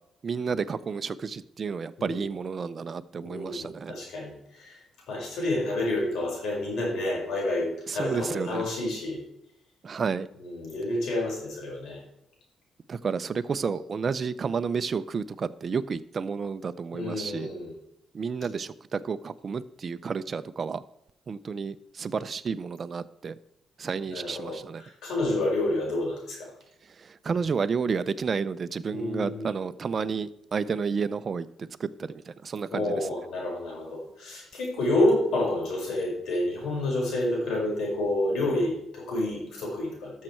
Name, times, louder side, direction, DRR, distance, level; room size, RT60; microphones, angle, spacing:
voice 1, 0.2-3.9 7.9-8.7 9.8-10.3 12.9-17.5 18.1-20.8 21.3-23.4 23.8-24.8 27.0-33.1, right 5 dB, 45° right, 13 dB, 0.5 m, -31 dB
voice 2, 3.2-4.8 5.1-9.2 10.4-12.0 16.9-17.7 24.1-26.5 28.9-29.5 32.7-40.2, left 1 dB, 70° left, -1 dB, 4.8 m, -29 dB
12.5 x 6.5 x 4.5 m, 0.80 s
cardioid pair, 90°, 0 cm